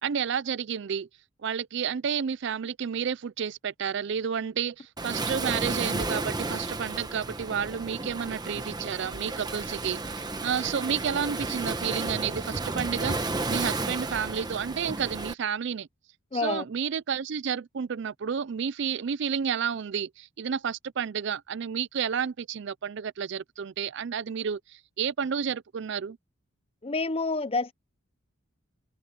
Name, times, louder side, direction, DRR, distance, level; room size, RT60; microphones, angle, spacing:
voice 1, 0.0-1.1 1.4-15.9 16.3-26.2, right 7 dB, 60° right, 0.4 m, -31 dB
Waves surf, 5.0-15.3, right 2 dB, 20° right, 1.0 m, -32 dB
voice 2, 16.3-16.6 26.8-27.7, left 3 dB, 30° left, 0.6 m, -28 dB
head